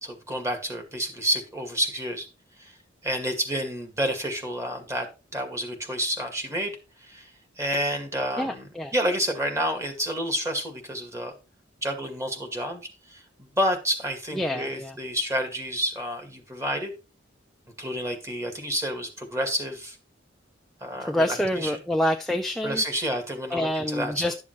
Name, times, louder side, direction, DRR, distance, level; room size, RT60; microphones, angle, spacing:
voice 1, 0.0-2.3 2.6-2.7 3.0-5.1 5.3-6.7 7.0-7.3 7.6-8.6 8.9-11.3 11.8-12.8 13.1-16.9 17.8-20.0 20.8-21.7 22.6-24.2, equal, 15° right, 2.1 m, -29 dB
voice 2, 8.4-8.9 14.3-15.0 21.0-23.1 23.5-24.3, left 1 dB, ahead, 0.6 m, -27 dB
12.0 x 7.0 x 3.2 m
head